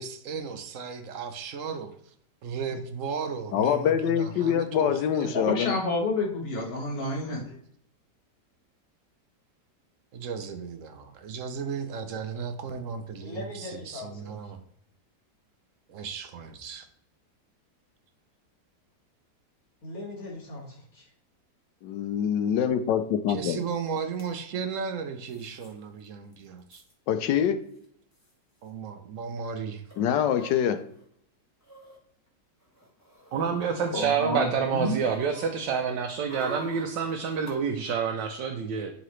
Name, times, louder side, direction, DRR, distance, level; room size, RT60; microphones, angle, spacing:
voice 1, 0.0-1.9 2.4-5.4 10.1-14.6 15.9-16.9 23.3-26.8 28.6-29.8 33.3-33.5, right 6 dB, 60° right, 8 dB, 0.9 m, -35 dB
voice 2, 3.5-5.7 21.8-23.6 27.1-27.6 30.0-30.8, left 9 dB, 85° left, 9 dB, 1.3 m, -25 dB
voice 3, 5.3-7.6 33.9-35.0, left 2 dB, 35° left, -2 dB, 1.8 m, -29 dB
voice 4, 13.2-14.5 19.8-21.1, left 2 dB, 55° left, -1 dB, 2.2 m, -41 dB
sound 1, 23.7-23.8 24.0-24.3 25.3-25.7 26.0-26.1 26.3-26.9 27.8-27.9 28.1-28.3 29.9-31.0 31.6-32.0 32.6-34.2 34.6-37.5 37.9-38.0, equal, 10° left, 1.5 m, -47 dB
voice 5, 33.3-38.9, right 6 dB, 85° right, 3 dB, 1.4 m, -27 dB
11.5 x 3.9 x 3.1 m, 0.67 s
omnidirectional pair, 1.9 m